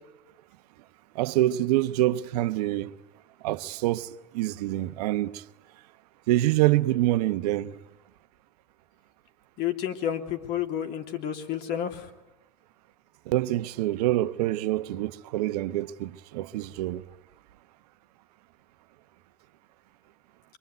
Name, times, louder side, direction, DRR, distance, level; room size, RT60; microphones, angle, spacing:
voice 1, 1.1-2.9 3.4-4.1 4.3-5.4 6.3-7.7 13.3-17.0, right 15 dB, 70° right, 1.1 m, -26 dB
voice 2, 9.6-12.1, left 10 dB, 50° left, 3.0 m, -30 dB
24.0 x 24.0 x 9.3 m
hypercardioid pair, 100°, 21 cm